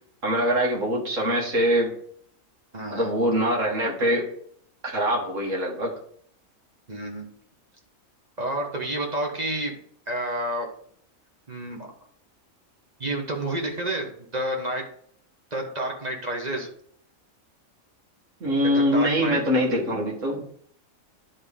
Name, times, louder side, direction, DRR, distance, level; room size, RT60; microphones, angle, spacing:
voice 1, 0.2-1.9 2.9-4.3 4.8-5.9 18.4-20.4, equal, 65° right, -2 dB, 2.2 m, -23 dB
voice 2, 2.7-3.1 6.9-7.3 8.4-9.8 10.1-10.7 11.5-11.9 13.0-14.9 15.5-16.7 18.6-19.5, right 1 dB, 30° right, 1 dB, 1.3 m, -30 dB
10.5 x 3.7 x 3.7 m, 0.62 s
omnidirectional pair, 1.4 m